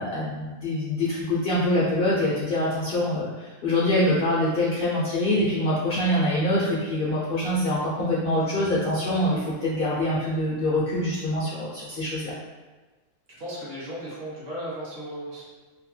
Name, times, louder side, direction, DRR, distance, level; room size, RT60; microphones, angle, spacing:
voice 1, 0.0-12.3, left 1 dB, 60° left, -7 dB, 0.6 m, -25 dB
voice 2, 13.4-15.4, equal, 55° right, -7 dB, 1.1 m, -35 dB
2.8 x 2.1 x 3.1 m, 1.3 s
omnidirectional pair, 1.3 m